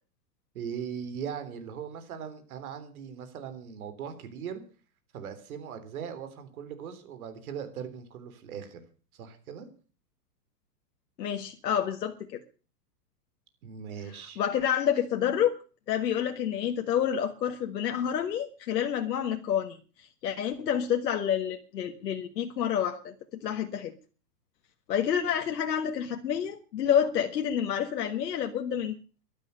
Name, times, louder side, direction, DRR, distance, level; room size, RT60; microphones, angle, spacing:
voice 1, 0.5-4.6 5.1-8.8 9.1-9.7 13.6-14.4, right 7 dB, 60° right, 10 dB, 3.7 m, -39 dB
voice 2, 11.2-12.4 14.4-15.6 15.9-23.1 23.4-23.9 24.9-29.0, left 9 dB, 90° left, 4 dB, 1.7 m, -28 dB
14.5 x 12.0 x 6.6 m, 0.38 s
hypercardioid pair, 160°, 48 cm